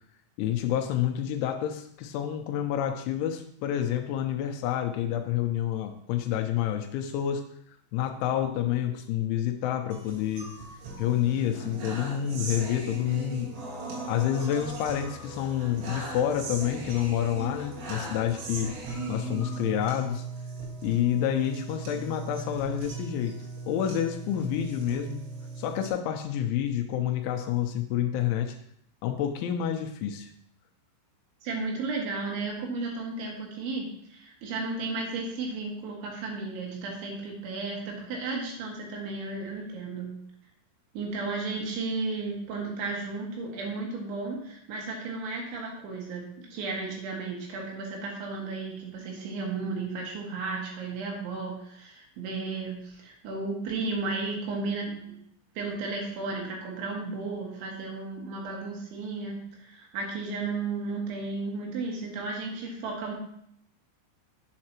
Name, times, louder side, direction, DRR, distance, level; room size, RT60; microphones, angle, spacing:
voice 1, 0.4-7.4 7.9-10.5 11.0-13.5 14.1-18.8 19.1-20.2 20.8-23.4 23.7-25.2 25.6-28.6 29.0-30.3, left 10 dB, 85° left, 5 dB, 3.0 m, -28 dB
sound 1, 9.9-25.9, right 3 dB, 90° right, 4.3 m, -38 dB
voice 2, 31.4-40.2 40.9-55.1 55.6-63.1, right 3 dB, 75° right, -1 dB, 3.9 m, -34 dB
8.8 x 7.4 x 2.9 m, 0.70 s
omnidirectional pair, 5.6 m